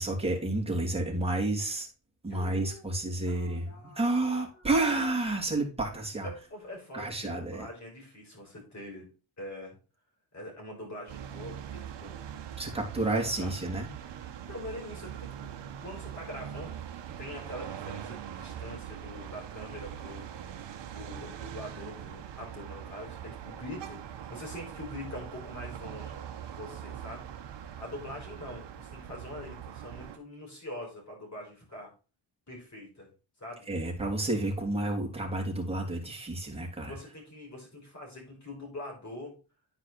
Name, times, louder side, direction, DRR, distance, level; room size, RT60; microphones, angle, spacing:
voice 1, 0.0-1.9 2.2-6.3 6.9-7.7 12.6-13.9 33.7-36.9, right 2 dB, 15° right, -1 dB, 2.6 m, -30 dB
voice 2, 2.3-2.9 3.2-4.7 5.0-5.1 6.2-9.1 9.4-9.8 10.3-12.2 13.4-13.5 14.4-15.5 15.8-16.8 17.2-20.3 20.9-27.3 27.8-31.9 32.5-33.1 33.4-33.7 36.8-39.3, left 1 dB, 35° left, -1 dB, 5.1 m, -44 dB
sound 1, 11.1-30.2, right 9 dB, 65° right, 1.0 m, -42 dB
10.5 x 4.8 x 4.1 m, 0.33 s
cardioid pair, 100°, 46 cm